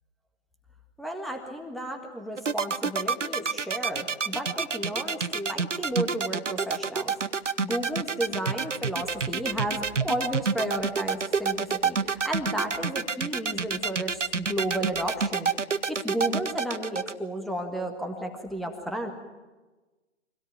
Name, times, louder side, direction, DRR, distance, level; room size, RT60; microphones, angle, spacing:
voice 1, 1.0-7.1 7.6-15.5 15.9-19.1, right 1 dB, ahead, 4 dB, 1.6 m, -33 dB
sound 1, 2.4-17.1, right 5 dB, 80° right, 1.0 m, -27 dB
25.0 x 17.5 x 9.3 m, 1.2 s
figure-of-eight pair, 130°, 37 cm